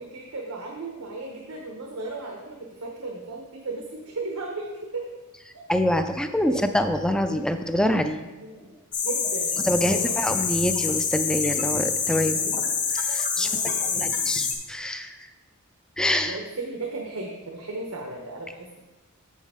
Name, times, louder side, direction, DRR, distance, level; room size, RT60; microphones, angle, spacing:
voice 1, 0.0-5.0 6.5-6.7 8.4-8.7 9.0-10.4 13.4-14.1 16.2-18.8, right 3 dB, 85° right, 0 dB, 1.0 m, -36 dB
voice 2, 5.7-8.2 9.6-12.5 12.9-13.6 14.0-15.2 16.0-16.4, equal, 5° left, 7 dB, 0.3 m, -25 dB
sound 1, 8.9-14.5, left 5 dB, 35° left, 0.9 m, -26 dB
7.4 x 7.0 x 3.6 m, 1.1 s
head